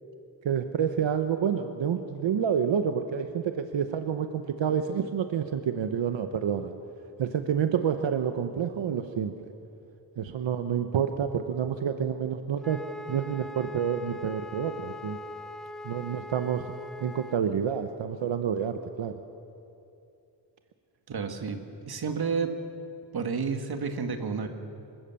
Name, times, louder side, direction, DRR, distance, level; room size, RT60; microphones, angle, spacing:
voice 1, 0.4-6.7 7.2-9.5 10.2-12.8 13.1-15.2 15.8-16.7 17.0-19.1, right 8 dB, 85° right, 7 dB, 1.0 m, -28 dB
Wind instrument woodwind instrument, 12.6-17.4, left 2 dB, ahead, 0.8 m, -42 dB
voice 2, 21.1-21.6 21.9-22.5 23.1-24.5, right 5 dB, 55° right, 6 dB, 1.8 m, -30 dB
26.0 x 16.5 x 7.0 m, 2.7 s
wide cardioid pair, 145°, 44 cm